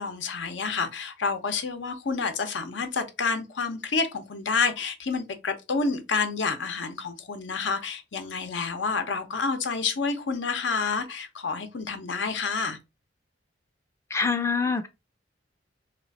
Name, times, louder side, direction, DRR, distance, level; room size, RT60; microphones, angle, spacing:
voice 1, 0.0-12.8, left 4 dB, 85° left, 0.8 m, -29 dB
voice 2, 14.1-14.9, left 5 dB, 15° left, 0.4 m, -25 dB
3.3 x 3.0 x 4.0 m
head